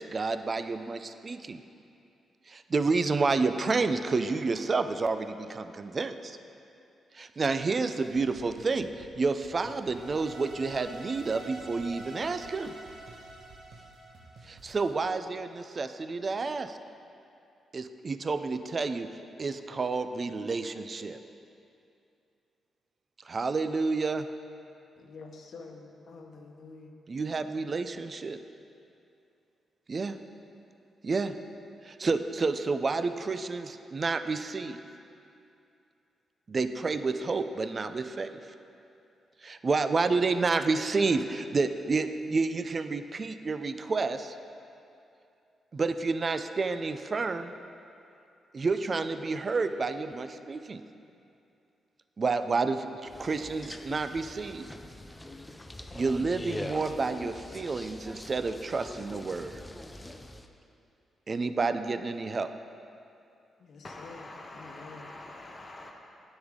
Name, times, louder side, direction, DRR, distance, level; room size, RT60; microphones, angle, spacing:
voice 1, 0.0-1.6 2.5-6.4 7.1-12.7 14.5-16.8 17.7-19.1 19.4-21.2 23.3-24.3 27.1-28.4 29.9-30.2 31.0-31.3 31.8-34.8 36.5-38.4 39.4-44.4 45.7-47.5 48.5-50.8 52.2-52.9 53.2-54.6 55.9-59.6 61.3-62.5, right 4 dB, 40° right, 10 dB, 0.4 m, -30 dB
sound 1, 7.9-14.9, right 3 dB, 60° right, 1.0 m, -54 dB
sound 2, 9.8-15.0, right 2 dB, 85° right, 1.7 m, -47 dB
voice 2, 25.0-26.9 63.6-65.1, left 4 dB, 70° left, 1 dB, 0.9 m, -48 dB
sound 3, 53.1-60.5, left 1 dB, 15° left, 0.5 m, -42 dB
voice 3, 63.8-65.9, left 2 dB, 35° left, 0 dB, 0.9 m, -45 dB
9.5 x 8.1 x 3.7 m, 2.6 s
cardioid pair, 80°, 0 cm